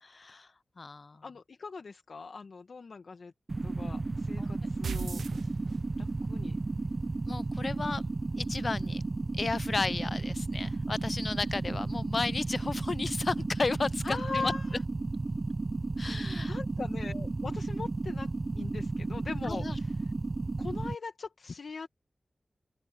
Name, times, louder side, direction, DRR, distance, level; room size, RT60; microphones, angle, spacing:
voice 1, 0.0-0.5 0.8-1.2 4.4-4.8 7.3-8.0 8.4-9.0 9.4-14.5 16.0-16.6 19.4-19.8, left 3 dB, 55° left, 0.4 m, -34 dB
voice 2, 1.2-3.3 3.6-5.5 6.0-6.6 14.0-14.8 16.4-20.0 20.6-21.9, left 4 dB, 75° left, 1.7 m, -40 dB
sound 1, 3.5-20.9, right 3 dB, 45° right, 0.7 m, -33 dB
sound 2, 4.8-6.1, right 6 dB, 90° right, 0.7 m, -37 dB
open air
cardioid pair, 55°, 0 cm